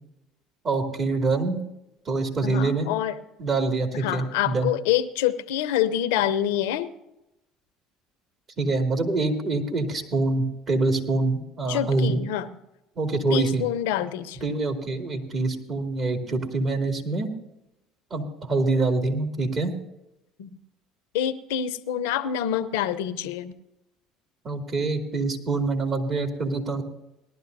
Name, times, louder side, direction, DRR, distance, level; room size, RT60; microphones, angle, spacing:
voice 1, 0.6-1.6 2.1-2.9 3.4-4.7 8.6-12.2 13.0-13.7 14.4-17.3 18.1-19.7 24.4-26.8, right 3 dB, 45° right, 3 dB, 2.6 m, -25 dB
voice 2, 2.4-3.2 4.0-6.9 11.7-12.5 13.3-14.4 20.4-20.5 21.1-23.6, left 10 dB, 80° left, 11 dB, 0.7 m, -26 dB
19.0 x 12.0 x 2.7 m, 0.89 s
supercardioid pair, 80°, 0 cm